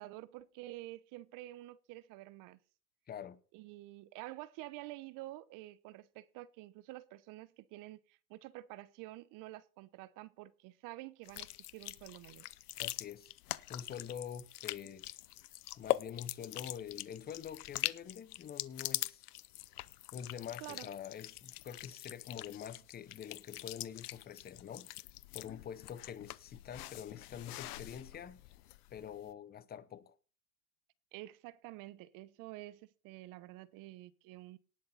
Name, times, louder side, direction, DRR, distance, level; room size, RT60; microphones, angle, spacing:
voice 1, 0.0-2.6 3.5-12.5 20.6-20.9 31.1-34.6, right 17 dB, 45° right, 0.9 m, -49 dB
voice 2, 3.1-3.4 12.8-13.3 13.7-15.1 15.8-19.3 20.1-24.9 25.3-28.4 28.9-30.1, left 8 dB, 20° left, 0.7 m, -46 dB
sound 1, 11.3-29.1, left 17 dB, 80° left, 0.8 m, -43 dB
19.0 x 6.6 x 4.2 m
hypercardioid pair, 115°, 45 cm